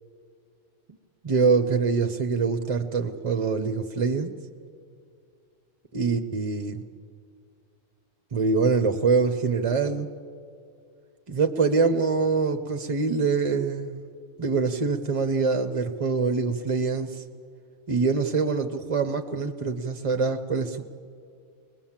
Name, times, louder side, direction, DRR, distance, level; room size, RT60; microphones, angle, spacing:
voice 1, 1.2-4.4 5.9-6.8 8.3-10.1 11.3-14.0 14.4-17.2 17.9-20.8, right 4 dB, 35° right, 8 dB, 0.6 m, -24 dB
22.0 x 20.0 x 7.3 m, 2.4 s
omnidirectional pair, 1.3 m